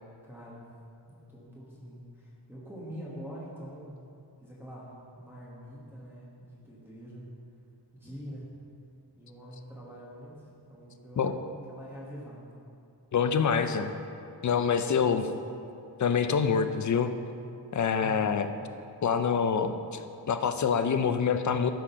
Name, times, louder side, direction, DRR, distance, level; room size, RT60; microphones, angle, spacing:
voice 1, 0.2-0.6 1.1-4.0 4.4-7.3 7.9-8.5 9.1-12.6 14.9-15.4 18.0-18.6, equal, 5° right, -7 dB, 1.3 m, -45 dB
voice 2, 13.1-13.9 14.4-15.2 16.0-17.1 17.7-18.5 19.0-20.0 20.3-21.7, left 6 dB, 45° left, 8 dB, 0.5 m, -26 dB
12.5 x 5.1 x 5.7 m, 2.5 s
wide cardioid pair, 175°, 42 cm